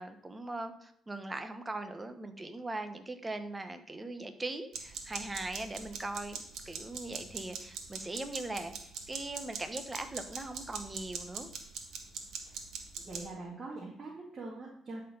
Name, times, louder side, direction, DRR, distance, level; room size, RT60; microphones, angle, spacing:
voice 1, 0.0-11.5, right 2 dB, 20° right, 8 dB, 1.0 m, -40 dB
sound 1, 4.7-13.2, right 6 dB, 80° right, 1.4 m, -43 dB
voice 2, 13.1-15.0, right 2 dB, 40° right, -3 dB, 2.0 m, -43 dB
11.5 x 4.5 x 5.5 m, 0.69 s
cardioid pair, 90°, 0 cm